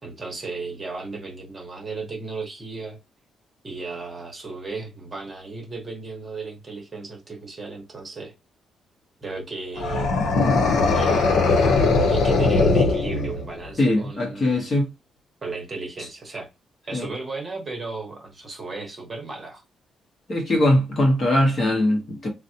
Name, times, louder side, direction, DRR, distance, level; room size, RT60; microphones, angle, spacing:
voice 1, 0.0-3.0 3.6-8.3 9.2-10.1 10.9-14.6 15.4-16.5 16.9-19.6, right 3 dB, 20° right, 1.0 m, -35 dB
sound 1, 9.8-13.6, left 3 dB, 75° left, 0.9 m, -20 dB
voice 2, 13.8-14.9 16.9-17.1 20.3-22.3, left 1 dB, 30° left, 0.9 m, -21 dB
3.9 x 2.1 x 2.8 m
cardioid pair, 175°, 0 cm